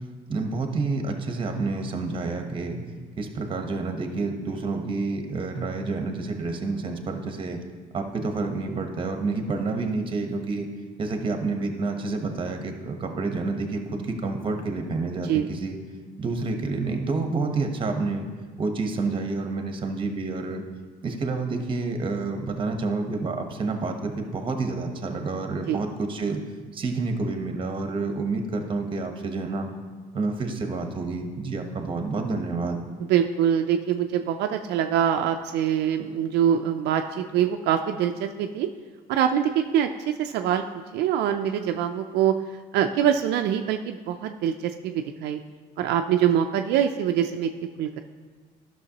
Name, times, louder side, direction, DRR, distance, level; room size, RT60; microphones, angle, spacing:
voice 1, 0.3-2.8 3.2-7.6 7.9-10.7 11.0-15.8 16.2-18.3 18.6-20.6 21.0-26.4 26.7-29.7 30.1-32.8, right 3 dB, 30° right, 5 dB, 1.0 m, -29 dB
voice 2, 33.1-38.7 39.1-40.6 40.9-42.3 42.7-45.4 45.8-47.5 47.8-48.0, right 9 dB, 80° right, 6 dB, 0.4 m, -24 dB
12.0 x 6.1 x 2.9 m, 1.4 s
cardioid pair, 110°, 17 cm